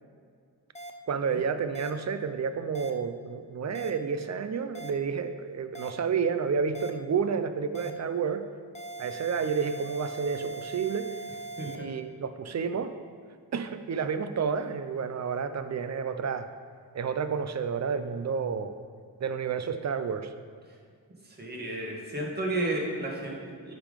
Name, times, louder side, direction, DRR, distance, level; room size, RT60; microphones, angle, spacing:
sound 1, 0.7-0.9 1.7-1.9 2.7-2.9 3.7-3.9 4.7-4.9 5.7-5.9 6.7-6.9 7.7-7.9 8.7-11.8, right 2 dB, 15° left, 0.5 m, -40 dB
voice 1, 1.1-8.4 9.0-11.1 11.6-12.9 13.5-16.5 16.9-18.7 19.2-20.3, right 6 dB, 40° right, 10 dB, 0.6 m, -30 dB
voice 2, 21.3-23.7, right 1 dB, 25° right, -2 dB, 1.8 m, -32 dB
9.6 x 3.8 x 5.2 m, 2.2 s
cardioid pair, 70°, 41 cm